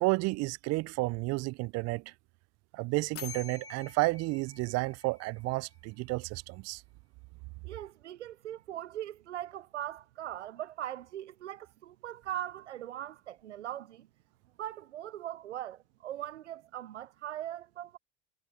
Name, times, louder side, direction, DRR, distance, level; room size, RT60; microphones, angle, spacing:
voice 1, 0.0-2.0 2.7-6.8, right 24 dB, 50° right, 0.4 m, -31 dB
sound 1, 3.2-5.9, left 7 dB, 40° left, 3.1 m, -47 dB
voice 2, 7.6-14.1 14.6-18.0, right 12 dB, 85° right, 0.8 m, -40 dB
hypercardioid pair, 70°, 34 cm